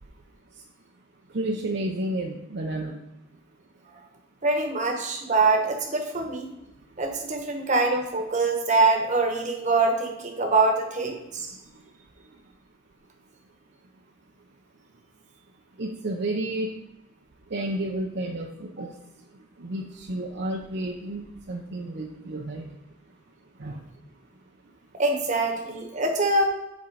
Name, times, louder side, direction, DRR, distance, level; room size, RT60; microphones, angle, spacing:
voice 1, 1.3-3.0 11.5-11.9 15.8-16.7 17.5-19.0 19.3-22.8 23.6-23.8, right 1 dB, 60° right, 0 dB, 0.7 m, -31 dB
voice 2, 4.4-6.5 7.0-11.5 18.8-18.9 25.0-26.4, right 3 dB, 40° right, 2 dB, 1.2 m, -24 dB
7.3 x 4.4 x 4.7 m, 0.91 s
head